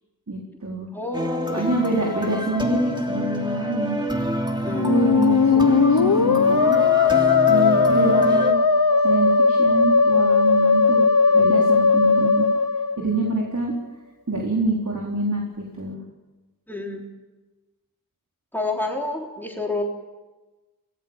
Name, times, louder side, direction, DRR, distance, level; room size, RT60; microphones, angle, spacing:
voice 1, 0.3-0.9 1.5-4.0 4.8-8.6 9.0-12.5 13.0-13.7 14.3-16.0, right 2 dB, 55° right, -1 dB, 4.2 m, -26 dB
voice 2, 0.9-1.6 4.6-5.0 11.3-11.5 16.7-17.0 18.5-19.8, left 2 dB, 5° left, -1 dB, 3.6 m, -29 dB
sound 1, 1.1-8.5, equal, 15° right, 2.9 m, -27 dB
Musical instrument, 4.7-13.5, left 4 dB, 80° left, 1.1 m, -18 dB
26.0 x 18.5 x 7.3 m, 1.1 s
wide cardioid pair, 65°, 35 cm